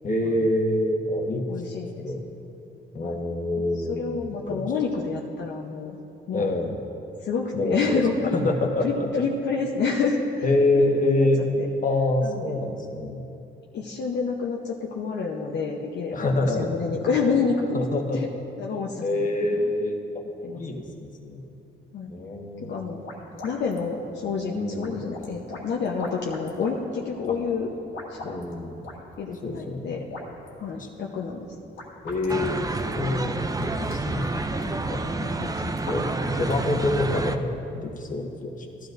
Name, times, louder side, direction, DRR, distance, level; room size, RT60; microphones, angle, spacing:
voice 1, 0.0-1.5 2.0-2.2 2.9-4.6 6.3-6.8 7.5-8.0 8.3-9.2 10.4-11.4 11.8-13.2 16.1-16.7 17.7-18.2 19.0-20.0 20.5-21.4 22.1-22.7 24.5-25.0 27.3-27.4 28.2-28.8 29.4-30.0 32.0-33.4 33.8-34.3 34.9-35.1 35.9-36.0 36.3-38.8, left 2 dB, 40° left, 1 dB, 1.5 m, -26 dB
voice 2, 1.5-2.3 3.0-3.2 3.6-6.0 6.3-6.6 7.2-8.4 8.8-11.3 11.6-11.7 12.2-12.6 13.7-17.8 18.1-18.3 18.6-19.7 20.4-20.6 21.9-22.1 22.6-23.0 23.4-27.7 28.1-28.4 29.2-30.0 30.6-31.5 35.2-35.8, left 5 dB, 60° left, -2 dB, 0.9 m, -29 dB
sound 1, 22.6-37.2, left 1 dB, 85° left, 2.0 m, -43 dB
sound 2, 32.3-37.4, right 2 dB, 20° right, 0.5 m, -29 dB
15.0 x 12.0 x 2.6 m, 2.8 s
cardioid pair, 90°, 20 cm